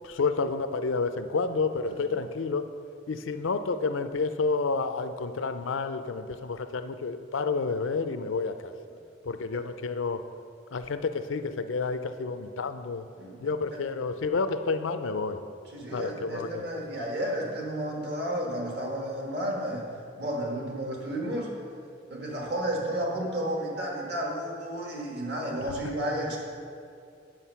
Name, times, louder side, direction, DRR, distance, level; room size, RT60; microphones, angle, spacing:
voice 1, 0.0-2.7 3.1-8.7 9.2-10.2 10.7-13.0 13.4-15.4 15.9-16.6 25.7-25.8, left 4 dB, 80° left, 10 dB, 0.5 m, -30 dB
voice 2, 1.8-2.2 9.5-9.6 13.2-13.4 13.7-13.8 15.7-19.9 20.2-21.5 22.1-26.4, right 1 dB, 55° right, -1 dB, 1.6 m, -32 dB
9.1 x 6.5 x 5.6 m, 2.5 s
head